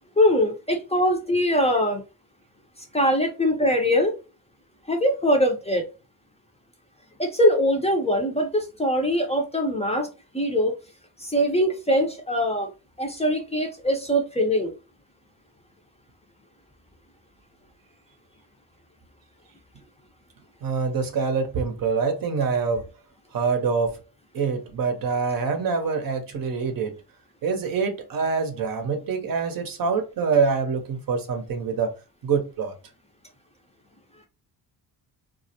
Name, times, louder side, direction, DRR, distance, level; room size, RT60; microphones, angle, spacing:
voice 1, 0.2-2.0 2.9-4.1 4.9-5.8 7.2-10.1 10.3-10.7 11.2-12.7 13.0-14.7, equal, 15° left, 0.6 m, -22 dB
voice 2, 20.6-22.8 23.3-24.0 24.3-26.9 27.4-31.9 32.2-32.7, right 5 dB, 50° right, 0.7 m, -25 dB
2.3 x 2.0 x 2.7 m
supercardioid pair, 65°, 44 cm